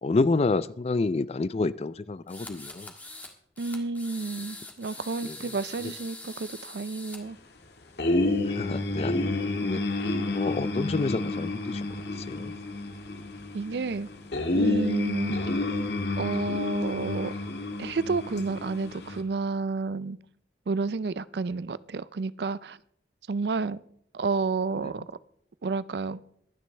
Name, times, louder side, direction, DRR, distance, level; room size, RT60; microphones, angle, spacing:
voice 1, 0.0-2.9 5.2-5.4 8.4-9.8 10.3-11.9 12.2-12.5 15.3-15.5, left 3 dB, 35° left, 0.4 m, -29 dB
sound 1, 2.3-3.3 3.6-7.2, left 2 dB, 10° left, 1.6 m, -43 dB
voice 2, 3.6-7.4 13.5-14.1 14.5-15.4 16.2-17.3 17.8-20.2 20.7-22.8 23.3-23.8 24.1-25.0 25.6-26.2, right 4 dB, 65° right, 0.4 m, -30 dB
sound 2, 8.0-19.2, left 2 dB, 70° left, 1.7 m, -30 dB
23.0 x 9.5 x 3.3 m
head